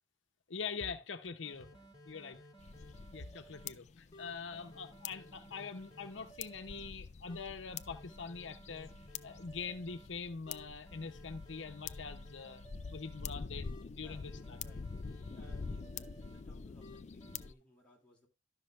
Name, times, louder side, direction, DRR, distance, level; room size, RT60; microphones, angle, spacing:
voice 1, 0.5-2.4 3.1-8.9 9.2-12.6 12.9-14.6, left 5 dB, 85° left, 0.9 m, -44 dB
sound 1, 1.4-3.7 4.1-6.9 7.3-10.1 10.5-13.2 13.6-16.4 16.8-17.5, right 1 dB, 20° left, 2.0 m, -57 dB
sound 2, 2.6-17.5, left 5 dB, 40° left, 0.4 m, -47 dB
voice 2, 14.0-14.8 15.3-18.3, equal, 5° left, 2.8 m, -63 dB
12.0 x 6.1 x 3.2 m
head